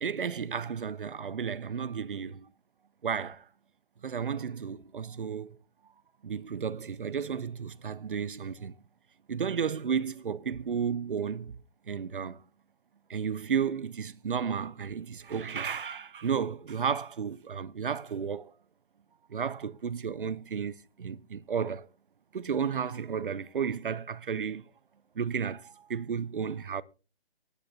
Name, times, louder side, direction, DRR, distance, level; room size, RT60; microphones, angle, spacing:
voice 1, 0.0-2.5 3.0-3.5 4.0-5.6 6.2-8.8 9.3-11.5 11.9-12.4 13.1-18.5 19.3-21.9 22.3-24.6 25.2-26.8, right 7 dB, 55° right, 0.6 m, -33 dB
24.0 x 9.0 x 2.8 m
hypercardioid pair, 175°, 31 cm